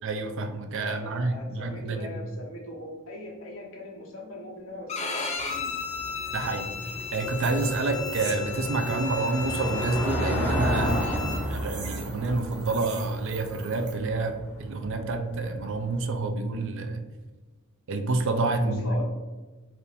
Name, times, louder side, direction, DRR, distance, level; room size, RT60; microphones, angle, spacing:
voice 1, 0.0-2.2 6.3-17.0 17.9-18.8, right 3 dB, 65° right, 6 dB, 0.5 m, -28 dB
voice 2, 0.8-5.7 18.6-19.0, left 1 dB, 70° left, -1 dB, 1.1 m, -40 dB
Bowed string instrument, 4.9-11.4, left 5 dB, 30° left, 0.6 m, -35 dB
Car passing by / Engine, 5.4-16.0, equal, 10° left, 1.5 m, -33 dB
sound 1, 5.5-13.9, right 5 dB, 90° right, 0.9 m, -45 dB
4.7 x 2.5 x 3.3 m, 1.3 s
head